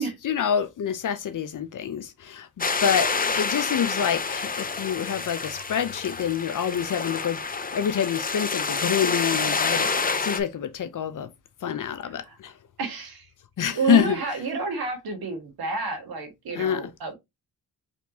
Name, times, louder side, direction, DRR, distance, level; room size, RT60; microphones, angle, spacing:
voice 1, 0.2-7.4 7.7-11.3 11.6-12.5 13.6-14.2 16.5-16.8, left 8 dB, 60° left, 0.7 m, -26 dB
sound 1, 2.6-10.4, left 4 dB, 25° left, 0.6 m, -28 dB
voice 2, 12.0-12.4 12.8-13.3 13.7-17.1, right 4 dB, 90° right, 1.6 m, -30 dB
4.4 x 3.5 x 2.8 m
cardioid pair, 55°, 35 cm